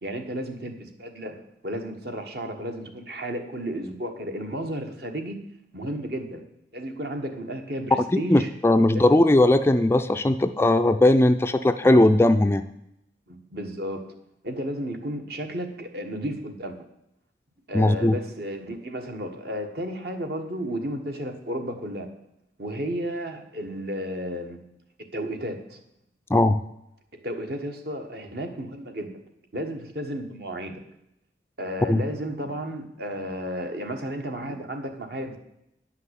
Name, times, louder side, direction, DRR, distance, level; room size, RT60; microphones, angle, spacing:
voice 1, 0.0-5.4 5.7-6.4 6.7-8.5 8.9-9.0 13.3-14.0 14.4-16.8 17.7-22.1 22.6-24.6 25.1-25.8 27.1-29.1 29.5-30.8 31.6-35.4, equal, 60° right, 5 dB, 1.4 m, -33 dB
voice 2, 8.1-12.6 17.7-18.2 26.3-26.6 31.9-32.0, left 1 dB, 15° left, 9 dB, 0.3 m, -19 dB
9.9 x 5.8 x 8.2 m, 0.81 s
head